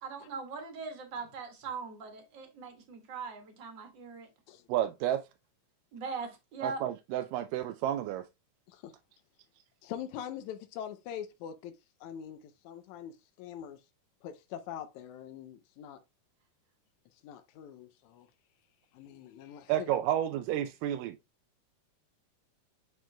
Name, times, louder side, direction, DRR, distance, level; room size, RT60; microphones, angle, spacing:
voice 1, 0.0-4.3 5.9-6.8, right 5 dB, 45° right, 1.8 m, -40 dB
voice 2, 4.7-5.2 6.6-8.2 19.7-21.2, right 12 dB, 85° right, 2.2 m, -31 dB
voice 3, 9.8-13.8 14.2-16.0 17.2-18.3 18.9-19.9, left 9 dB, 75° left, 1.8 m, -43 dB
9.4 x 4.6 x 2.2 m
omnidirectional pair, 3.8 m